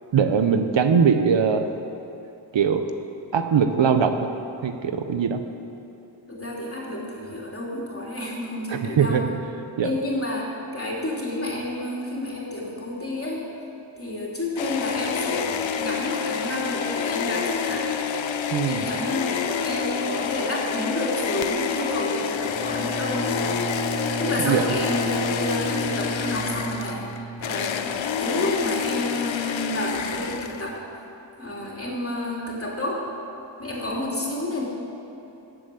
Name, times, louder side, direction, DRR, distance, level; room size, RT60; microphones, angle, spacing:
voice 1, 0.1-1.7 2.5-2.8 3.3-4.1 4.6-5.4 8.7-9.2 9.8-9.9 18.5-18.9 24.4-24.6, right 6 dB, 75° right, 7 dB, 0.9 m, -21 dB
voice 2, 6.3-9.2 9.8-10.5 10.7-13.5 14.0-17.9 18.7-23.3 24.2-30.8 31.4-33.0 33.6-34.6, left 1 dB, 30° left, -3 dB, 3.2 m, -30 dB
sound 1, 14.6-30.8, left 7 dB, 80° left, 0.8 m, -28 dB
Bowed string instrument, 22.4-27.9, right 3 dB, 15° left, 1.4 m, -33 dB
13.5 x 7.8 x 8.5 m, 2.8 s
wide cardioid pair, 90°, 45 cm